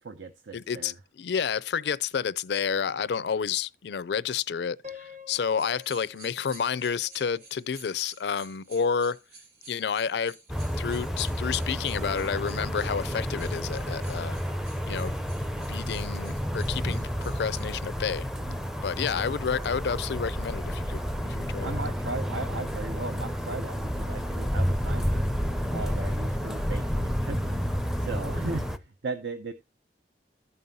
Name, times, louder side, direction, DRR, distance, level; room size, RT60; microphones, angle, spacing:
voice 1, 0.0-1.0 16.8-17.1 18.4-18.7 21.1-25.3 25.7-29.5, right 3 dB, 80° right, 0.7 m, -38 dB
voice 2, 0.5-9.2 9.7-10.4 10.8-14.4 14.9-15.1 15.7-18.3 18.8-21.8, left 6 dB, 65° left, 0.4 m, -30 dB
Piano, 4.8-7.9, left 6 dB, 40° right, 0.8 m, -48 dB
Little Bells, 5.6-17.8, right 3 dB, 60° right, 2.7 m, -53 dB
sound 1, 10.5-28.8, equal, ahead, 0.5 m, -30 dB
15.0 x 5.5 x 2.6 m
head